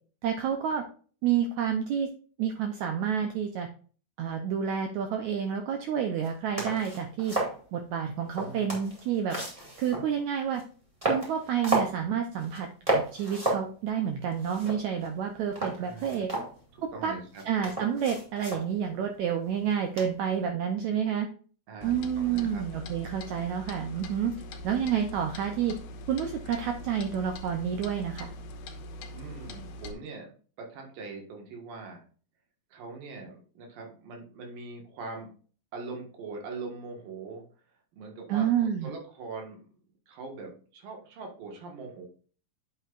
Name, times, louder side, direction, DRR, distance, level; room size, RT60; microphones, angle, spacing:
voice 1, 0.2-0.8 1.2-2.1 2.4-3.7 4.2-7.4 7.7-9.4 9.8-10.6 11.0-12.7 12.9-16.3 17.0-17.1 17.4-21.3 21.8-24.3 24.6-25.8 26.1-28.3 38.3-38.9, right 8 dB, 90° right, 5 dB, 1.6 m, -29 dB
sound 1, 6.2-6.3 6.6-7.6 8.2-10.1 10.5-10.6 11.0-12.0 12.4-12.6 12.9-13.7 14.0-14.1 14.3-15.2 15.6-16.9 17.3-18.7 20.0-20.3, right 2 dB, 15° right, 1.5 m, -32 dB
voice 2, 8.4-8.8 15.8-16.3 16.7-17.4 21.7-22.6 29.1-30.3 30.6-32.1 32.7-35.3 35.7-37.4 37.9-38.5 38.8-39.6 40.1-42.1, right 3 dB, 70° right, 2 dB, 3.3 m, -42 dB
Clock, 21.8-29.9, left 1 dB, 85° left, 2.7 m, -42 dB
8.8 x 6.8 x 2.5 m, 0.41 s
omnidirectional pair, 4.3 m